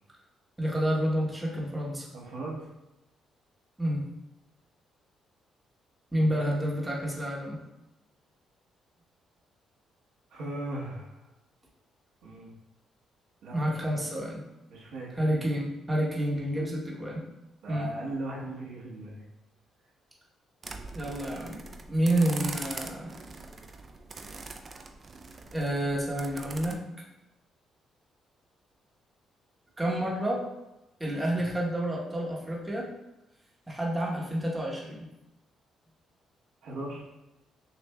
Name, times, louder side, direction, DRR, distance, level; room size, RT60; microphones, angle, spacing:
voice 1, 0.6-2.1 3.8-4.0 6.1-7.6 13.5-14.4 15.2-17.2 17.7-17.9 20.9-21.6 21.9-23.1 25.5-26.8 29.8-30.4 31.0-32.9 33.7-35.1, right 1 dB, 15° right, -4 dB, 1.0 m, -29 dB
voice 2, 2.1-2.6 6.1-6.3 10.3-11.2 12.2-12.5 13.4-13.9 14.7-15.5 16.5-16.7 17.6-19.2 31.2-31.5 36.6-37.0, right 2 dB, 80° right, -4 dB, 0.9 m, -38 dB
sound 1, 20.6-26.7, right 3 dB, 35° right, 0.4 m, -42 dB
6.3 x 2.5 x 2.2 m, 0.94 s
cardioid pair, 90°, 0 cm